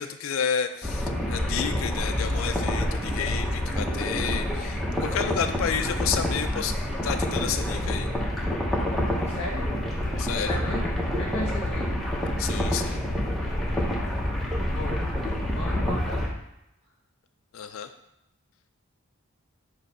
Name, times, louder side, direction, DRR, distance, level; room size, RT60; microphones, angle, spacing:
voice 1, 0.0-6.7 7.0-8.1 10.2-10.6 12.4-13.0 17.5-17.9, left 7 dB, 70° left, 7 dB, 0.3 m, -31 dB
sound 1, 0.8-16.3, left 1 dB, ahead, 0.8 m, -27 dB
voice 2, 9.2-9.6 10.4-10.8 11.1-11.9 14.7-15.2 15.5-16.2, left 1 dB, 30° left, -3 dB, 1.3 m, -34 dB
6.5 x 2.8 x 5.3 m, 0.83 s
head